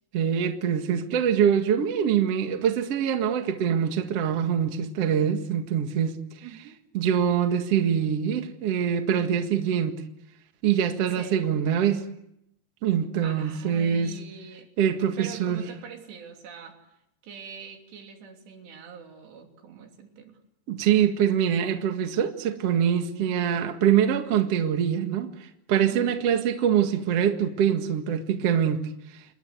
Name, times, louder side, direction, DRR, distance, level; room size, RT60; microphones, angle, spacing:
voice 1, 0.1-6.2 6.9-10.0 10.6-12.0 12.8-14.1 14.8-15.6 20.7-28.8, right 8 dB, 50° right, 6 dB, 2.2 m, -24 dB
voice 2, 6.4-6.8 11.2-11.5 13.2-14.7 15.2-16.8 17.2-20.4 25.8-26.2, right 6 dB, 80° right, 3 dB, 5.2 m, -43 dB
28.5 x 21.0 x 8.2 m, 0.82 s
omnidirectional pair, 4.8 m